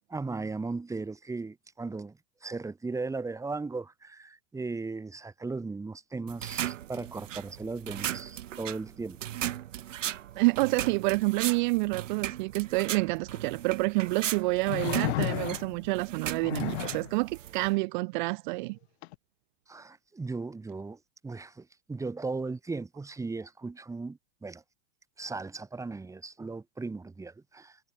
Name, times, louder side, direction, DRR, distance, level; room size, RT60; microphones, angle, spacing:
voice 1, 0.1-9.2 19.7-24.6 25.2-27.8, right 3 dB, 10° right, 1.5 m, -37 dB
sound 1, 6.3-17.7, right 11 dB, 85° right, 0.9 m, -37 dB
voice 2, 10.4-18.8, right 26 dB, 45° right, 0.4 m, -28 dB
sound 2, 13.3-13.4 14.7-15.9 16.4-17.1 19.0-19.1, left 19 dB, 60° left, 0.7 m, -32 dB
hypercardioid pair, 115°, 37 cm